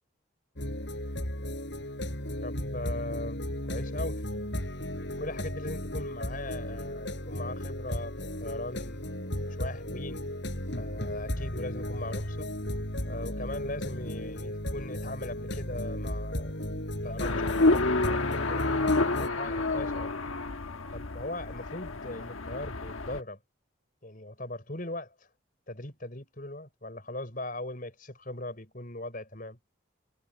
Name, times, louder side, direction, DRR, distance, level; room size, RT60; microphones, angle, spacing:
sound 1, 0.6-19.3, left 1 dB, 60° left, 5.9 m, -35 dB
voice 1, 2.4-4.2 5.2-9.1 9.6-10.2 10.7-12.5 13.1-16.6 17.0-18.7 19.2-20.1 20.9-23.4 24.0-25.1 25.7-29.6, left 2 dB, 45° left, 5.7 m, -39 dB
sound 2, 17.2-23.2, left 2 dB, 90° left, 1.3 m, -29 dB
head